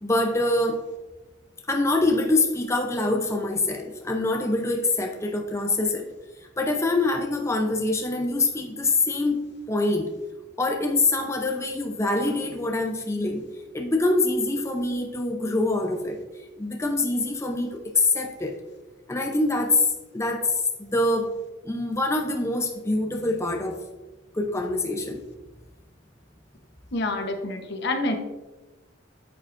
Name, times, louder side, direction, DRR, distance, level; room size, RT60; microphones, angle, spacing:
voice 1, 0.0-0.8 1.7-6.1 6.6-10.1 10.6-13.4 13.7-16.2 16.6-18.6 19.1-19.9 20.1-21.3 21.6-23.8 24.3-25.2, left 2 dB, 15° left, 2 dB, 0.6 m, -25 dB
voice 2, 26.9-28.2, left 2 dB, 65° left, 5 dB, 1.0 m, -27 dB
8.8 x 7.5 x 2.6 m, 1.1 s
head